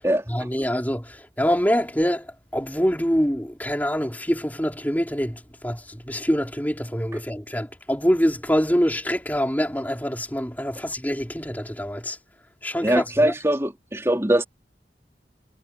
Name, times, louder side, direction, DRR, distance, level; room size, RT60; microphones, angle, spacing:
voice 1, 0.3-12.2 12.6-13.3, equal, 10° left, 4.2 m, -25 dB
voice 2, 12.8-14.4, right 1 dB, 15° right, 3.4 m, -21 dB
head